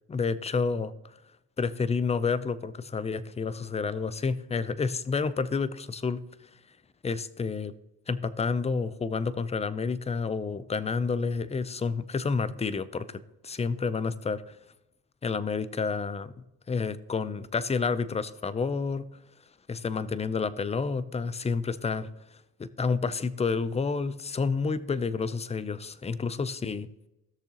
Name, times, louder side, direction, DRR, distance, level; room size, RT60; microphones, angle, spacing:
voice 1, 0.1-0.9 1.6-6.2 7.0-7.7 8.1-14.4 15.2-16.3 16.7-19.0 19.7-22.1 22.6-26.9, left 5 dB, 15° left, 16 dB, 0.5 m, -29 dB
16.0 x 6.6 x 2.9 m, 0.93 s
cardioid pair, 85°, 43 cm